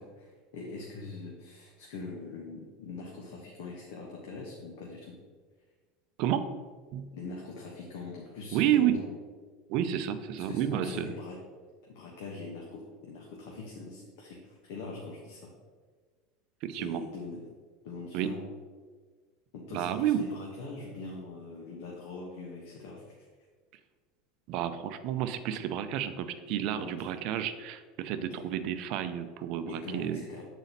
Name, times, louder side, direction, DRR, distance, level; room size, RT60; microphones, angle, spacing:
voice 1, 0.0-5.2 7.1-9.1 10.4-11.4 11.8-15.5 16.8-17.4 17.8-18.4 19.5-23.0 26.8-27.1 28.2-28.4 29.6-30.4, left 3 dB, 75° left, -2 dB, 1.1 m, -42 dB
voice 2, 6.2-6.5 6.9-7.1 8.5-9.0 9.7-11.1 16.6-17.0 18.1-18.3 19.7-20.2 24.5-30.2, right 10 dB, 50° right, 9 dB, 0.5 m, -30 dB
8.0 x 4.1 x 4.1 m, 1.5 s
supercardioid pair, 160°, 0 cm